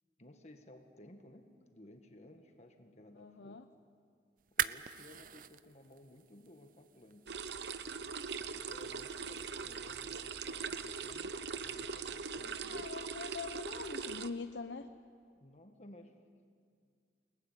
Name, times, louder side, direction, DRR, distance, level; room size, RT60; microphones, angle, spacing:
voice 1, 0.2-3.6 4.5-7.3 8.3-12.9 15.4-16.2, left 1 dB, 40° left, 5 dB, 1.7 m, -57 dB
voice 2, 3.2-3.6 12.6-14.9, left 4 dB, 75° left, 7 dB, 0.9 m, -43 dB
sound 1, 4.4-11.2, right 9 dB, 50° right, 0.6 m, -44 dB
sound 2, 7.3-14.3, right 5 dB, 75° right, 1.0 m, -41 dB
29.5 x 20.5 x 9.9 m, 2.1 s
head